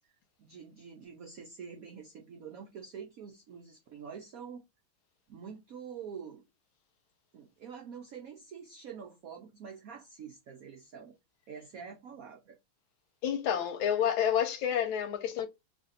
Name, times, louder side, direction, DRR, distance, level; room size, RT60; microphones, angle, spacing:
voice 1, 0.4-4.6 5.3-6.4 7.3-11.2 11.5-12.6, right 6 dB, 80° right, 0.7 m, -46 dB
voice 2, 13.2-15.5, left 9 dB, 80° left, 1.4 m, -29 dB
3.3 x 2.5 x 4.0 m
omnidirectional pair, 2.3 m